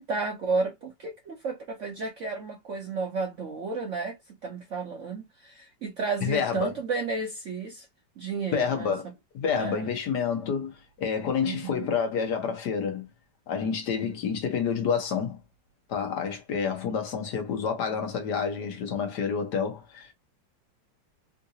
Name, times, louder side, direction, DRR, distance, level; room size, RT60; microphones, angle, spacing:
voice 1, 0.0-4.2 4.4-7.9 8.2-8.9 9.6-9.9 11.4-11.9, right 4 dB, 60° right, 0.8 m, -32 dB
voice 2, 6.2-6.7 8.5-9.1 9.3-10.7 11.0-13.1 13.5-15.4 15.9-20.1, left 6 dB, 65° left, 1.5 m, -28 dB
3.8 x 2.5 x 2.6 m
omnidirectional pair, 2.1 m